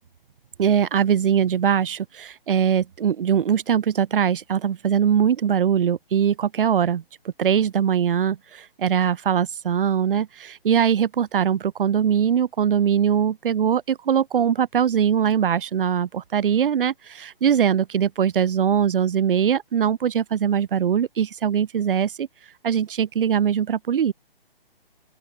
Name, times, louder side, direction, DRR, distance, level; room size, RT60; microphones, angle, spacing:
voice 1, 0.6-7.0 7.4-22.3 22.6-24.1, right 8 dB, 65° right, 0.7 m, -21 dB
open air
hypercardioid pair, 150°, 30 cm